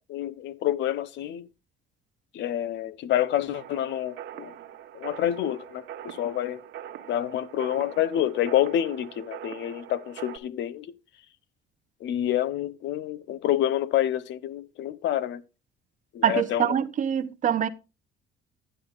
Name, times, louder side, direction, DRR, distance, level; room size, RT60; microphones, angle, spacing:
voice 1, 0.1-1.4 2.3-4.6 4.9-6.6 7.1-10.9 12.0-15.4 16.1-16.7, left 11 dB, 65° left, 0.7 m, -28 dB
sound 1, 3.5-10.4, right 10 dB, 75° right, 1.2 m, -43 dB
voice 2, 16.2-17.7, right 9 dB, 40° right, 0.7 m, -24 dB
11.0 x 9.9 x 2.4 m
cardioid pair, 135°, 20 cm